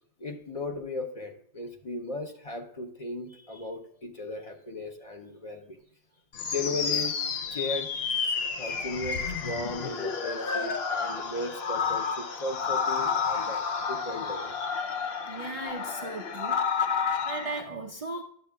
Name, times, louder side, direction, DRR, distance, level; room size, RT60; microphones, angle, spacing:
voice 1, 0.2-5.8 6.4-7.2 7.5-7.9 8.6-14.6, left 2 dB, 35° left, 3 dB, 0.8 m, -36 dB
sound 1, 6.3-17.6, left 6 dB, 70° left, 1.0 m, -30 dB
voice 2, 15.3-16.6 16.9-18.2, right 2 dB, 45° right, 2 dB, 0.5 m, -37 dB
10.0 x 7.5 x 2.3 m, 0.68 s
omnidirectional pair, 1.1 m